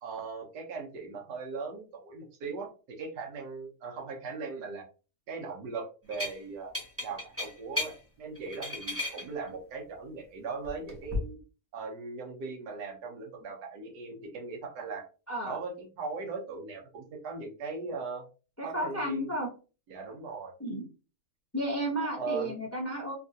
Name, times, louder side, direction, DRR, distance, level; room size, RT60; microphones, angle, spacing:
voice 1, 0.0-4.8 5.3-6.7 7.0-11.4 11.7-15.1 15.4-18.2 18.6-19.3 19.9-20.5 22.0-22.6, right 4 dB, 80° right, 1 dB, 1.4 m, -39 dB
sound 1, 6.1-6.4 6.7-7.9 8.4-9.2 10.6-11.2, left 2 dB, 10° right, 0.7 m, -34 dB
voice 2, 18.6-19.5 20.6-20.9 21.5-23.1, right 1 dB, 25° left, -2 dB, 0.3 m, -32 dB
3.3 x 2.4 x 2.6 m, 0.34 s
omnidirectional pair, 1.7 m